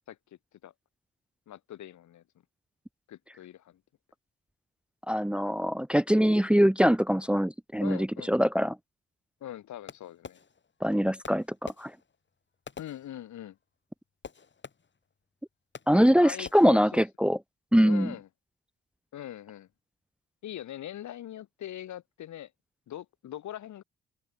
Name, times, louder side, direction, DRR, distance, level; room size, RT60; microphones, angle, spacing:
voice 1, 1.5-2.2 3.1-3.8 7.8-8.3 9.4-10.4 12.8-13.6 16.2-17.0 17.8-18.3 19.1-19.7 20.4-22.5 22.9-23.8, left 12 dB, 70° left, 2.4 m, -42 dB
voice 2, 5.1-8.8 10.8-11.9 15.9-17.4 17.7-18.1, equal, 5° right, 0.9 m, -23 dB
Fireworks, 9.9-10.9 11.2-13.6 14.2-15.1 15.7-16.2 16.4-16.9, left 5 dB, 40° left, 5.1 m, -48 dB
open air
cardioid pair, 90°, 30 cm